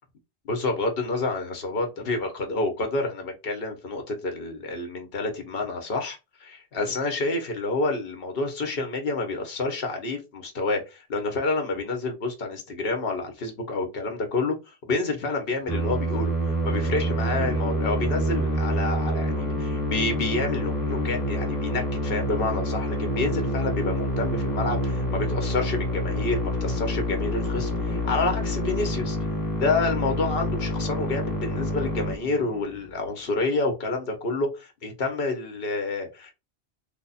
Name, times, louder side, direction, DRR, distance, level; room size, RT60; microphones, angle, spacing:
voice 1, 0.4-29.2 29.6-36.3, left 3 dB, 65° left, 1.1 m, -29 dB
Musical instrument, 15.7-32.8, equal, 20° left, 1.3 m, -27 dB
3.3 x 2.1 x 4.0 m
omnidirectional pair, 1.1 m